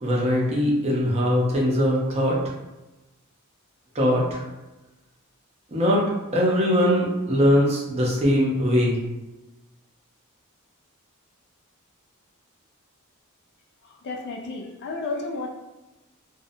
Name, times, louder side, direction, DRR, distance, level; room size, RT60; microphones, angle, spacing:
voice 1, 0.0-2.4 3.9-4.4 5.7-6.0 6.3-9.0, equal, 30° right, -4 dB, 0.5 m, -21 dB
voice 2, 13.8-15.5, left 3 dB, 50° left, 1 dB, 0.3 m, -32 dB
2.6 x 2.1 x 2.6 m, 1.0 s
head